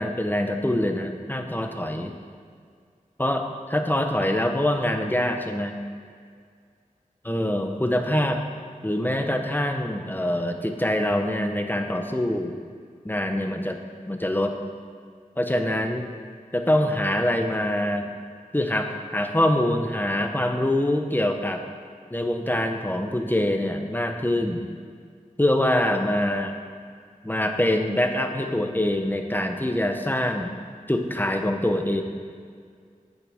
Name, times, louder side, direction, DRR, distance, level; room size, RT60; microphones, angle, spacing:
voice 1, 0.0-2.1 3.2-5.8 7.2-8.4 8.8-12.6 13.0-13.8 14.1-14.5 15.4-16.1 16.5-18.1 18.5-21.6 22.1-24.7 25.4-26.5 27.2-30.5 30.9-32.0, left 1 dB, 15° left, 5 dB, 0.9 m, -24 dB
9.2 x 8.6 x 3.6 m, 2.1 s
cardioid pair, 40°, 14 cm